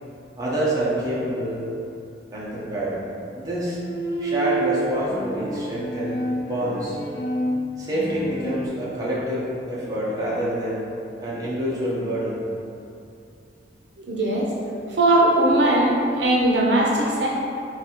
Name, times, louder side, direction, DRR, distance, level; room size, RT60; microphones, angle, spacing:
voice 1, 0.4-1.7 2.3-3.0 3.3-3.8 4.2-7.0 7.8-10.8 11.2-12.4, right 1 dB, 20° right, -8 dB, 0.8 m, -27 dB
Bowed string instrument, 3.7-8.7, right 1 dB, 65° left, 0.9 m, -29 dB
voice 2, 14.0-14.5 14.9-17.3, right 1 dB, 75° right, -3 dB, 0.6 m, -19 dB
3.9 x 2.7 x 4.3 m, 2.6 s
head